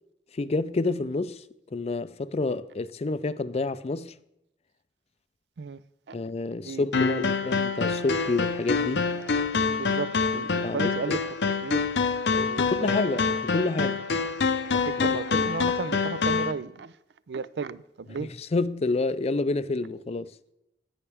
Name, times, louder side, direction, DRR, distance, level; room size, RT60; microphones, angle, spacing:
voice 1, 0.3-1.4 1.7-4.1 6.1-9.0 10.6-11.2 12.3-14.0 15.0-15.1 15.3-15.5 18.2-20.3, left 3 dB, 35° left, 0.4 m, -29 dB
voice 2, 6.6-7.3 9.2-9.3 9.7-11.8 12.5-13.4 14.8-16.9 17.3-18.3, right 5 dB, 70° right, 0.4 m, -35 dB
sound 1, 6.9-16.5, left 4 dB, 75° left, 0.7 m, -26 dB
17.0 x 5.7 x 3.4 m
head